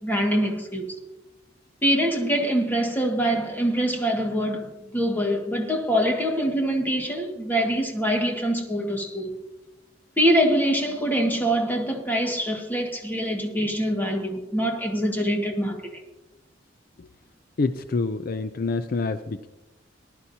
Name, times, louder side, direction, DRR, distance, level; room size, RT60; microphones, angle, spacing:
voice 1, 0.0-0.9 1.8-9.3 10.2-15.9, equal, 10° left, 1.8 m, -24 dB
voice 2, 17.6-19.5, left 3 dB, 50° left, 0.5 m, -27 dB
19.0 x 11.5 x 2.8 m
head